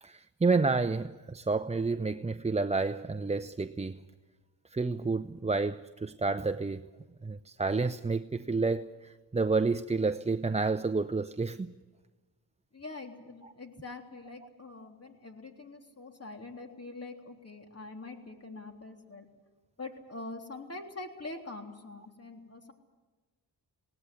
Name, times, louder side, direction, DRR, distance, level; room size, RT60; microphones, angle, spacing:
voice 1, 0.0-4.0 4.7-6.9 7.2-11.7, right 3 dB, 15° right, 0.6 m, -30 dB
voice 2, 12.7-19.3 19.8-22.7, left 3 dB, 35° left, 3.5 m, -44 dB
19.0 x 18.5 x 9.9 m
cardioid pair, 60°, 44 cm